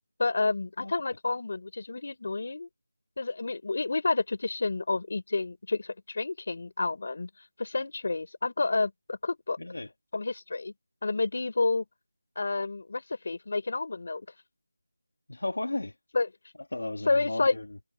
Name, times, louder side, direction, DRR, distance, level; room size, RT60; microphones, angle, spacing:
voice 1, 0.2-2.7 3.2-7.3 7.6-9.6 10.1-10.7 11.0-11.8 12.3-14.3 16.1-16.3 17.1-17.6, left 3 dB, 35° left, 4.9 m, -29 dB
voice 2, 9.6-9.9 15.3-15.9 16.7-17.7, left 2 dB, 70° left, 2.8 m, -34 dB
figure-of-eight pair, 180°, 0 cm